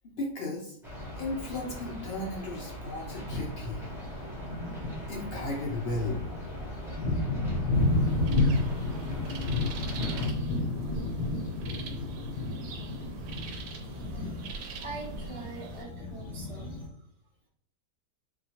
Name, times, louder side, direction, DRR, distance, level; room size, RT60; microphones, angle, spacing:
voice 1, 0.0-0.8 1.2-3.9 5.1-6.2, left 2 dB, 65° left, -2 dB, 0.6 m, -35 dB
sound 1, 0.8-10.3, equal, 5° right, 0.4 m, -40 dB
Thunder, 0.9-1.0 2.0-2.1 2.6-2.7 3.1-16.9, left 2 dB, 90° left, 1.4 m, -32 dB
sound 2, 7.7-15.8, right 3 dB, 80° right, 1.1 m, -43 dB
voice 2, 14.8-16.8, right 4 dB, 30° right, -3 dB, 0.7 m, -43 dB
4.0 x 2.2 x 2.8 m, 0.70 s
omnidirectional pair, 1.7 m